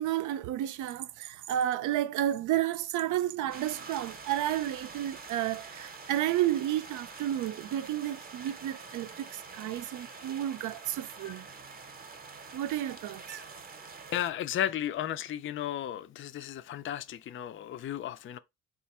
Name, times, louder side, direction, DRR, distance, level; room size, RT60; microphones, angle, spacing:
voice 1, 0.0-11.5 12.5-13.4, right 12 dB, 80° right, 0.5 m, -31 dB
sound 1, 3.5-14.3, right 4 dB, 30° right, 0.7 m, -46 dB
voice 2, 14.1-18.4, left 11 dB, 40° left, 0.4 m, -34 dB
4.2 x 2.4 x 4.2 m
cardioid pair, 90°, 30 cm